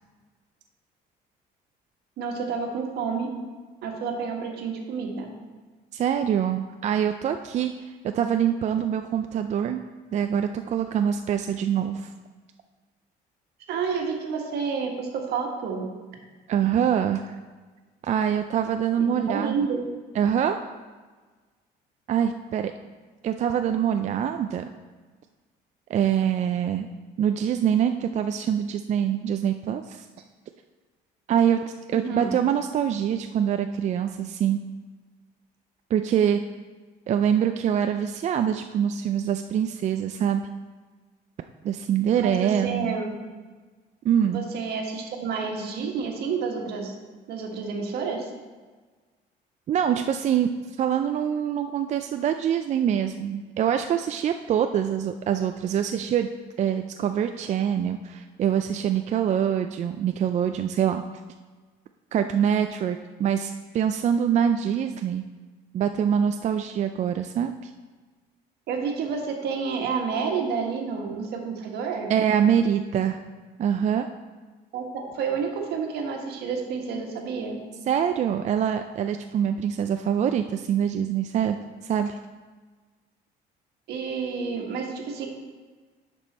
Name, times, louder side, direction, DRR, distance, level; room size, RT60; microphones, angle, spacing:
voice 1, 2.2-3.3 3.8-5.3 13.7-15.9 19.0-19.8 31.9-32.3 42.2-43.2 44.3-46.9 47.3-48.3 68.7-72.1 74.7-77.6 83.9-85.3, right 5 dB, 75° right, 2 dB, 1.6 m, -29 dB
voice 2, 5.9-9.8 10.1-12.1 16.5-17.4 18.0-19.6 20.2-20.6 22.1-22.7 23.2-24.7 25.9-26.9 27.2-30.1 31.3-34.6 35.9-36.4 37.1-40.4 41.6-42.9 44.0-44.4 49.7-50.5 50.8-56.3 56.6-61.0 62.1-65.2 65.7-67.7 72.1-73.2 73.6-74.1 77.9-81.6 81.8-82.2, right 9 dB, 45° right, 7 dB, 0.4 m, -24 dB
10.0 x 5.3 x 4.3 m, 1.4 s
cardioid pair, 110°, 17 cm